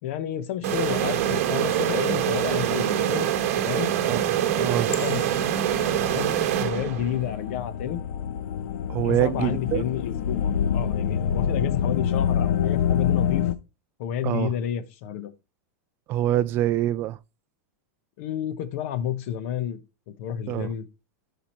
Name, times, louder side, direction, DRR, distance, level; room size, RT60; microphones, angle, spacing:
voice 1, 0.0-3.3 3.6-3.9 4.5-5.3 6.1-8.0 9.0-13.5 14.0-15.3 18.2-19.8 20.2-20.8, left 10 dB, 50° left, 1.1 m, -30 dB
sound 1, 0.6-7.3, right 10 dB, 55° right, 1.3 m, -25 dB
voice 2, 4.1-4.9 8.9-9.9 14.2-14.5 16.1-17.2 20.5-20.7, right 13 dB, 25° right, 0.4 m, -25 dB
sound 2, 4.9-13.5, left 8 dB, 75° left, 0.8 m, -27 dB
13.0 x 5.0 x 3.1 m
supercardioid pair, 165°, 9 cm